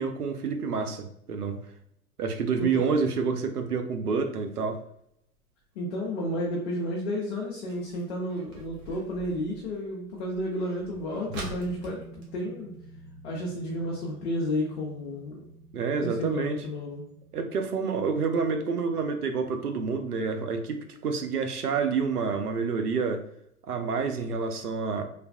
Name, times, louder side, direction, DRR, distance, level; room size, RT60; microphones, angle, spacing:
voice 1, 0.0-1.6 2.2-4.8 15.7-16.6 17.3-23.2 23.7-25.0, right 5 dB, 85° right, 6 dB, 0.6 m, -28 dB
voice 2, 2.6-3.1 5.8-12.8 13.2-15.4 16.0-17.0, left 1 dB, 45° left, -3 dB, 0.7 m, -32 dB
sound 1, 4.8-13.5 13.8-13.9 14.1-14.5 15.0-15.1 15.6-15.7 16.0-16.1 16.5-16.6, right 3 dB, 30° right, 0.7 m, -47 dB
sound 2, 11.3-20.4 20.7-20.8, right 1 dB, 5° right, 1.2 m, -48 dB
3.3 x 2.4 x 2.2 m, 0.74 s
figure-of-eight pair, 100°, 44 cm